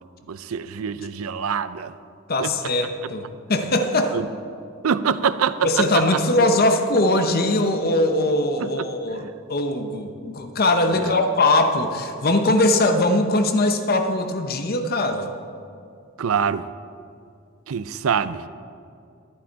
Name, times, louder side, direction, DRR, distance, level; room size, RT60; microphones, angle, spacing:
voice 1, 0.3-1.9 2.4-2.5 4.1-4.3 4.8-6.0 8.6-8.7 9.2-9.3 10.9-11.1 16.2-16.7 17.7-18.4, right 7 dB, 85° right, 14 dB, 0.5 m, -24 dB
voice 2, 2.3-4.2 5.6-15.3, left 2 dB, 45° left, 6 dB, 0.8 m, -21 dB
11.5 x 11.5 x 4.6 m, 2.4 s
head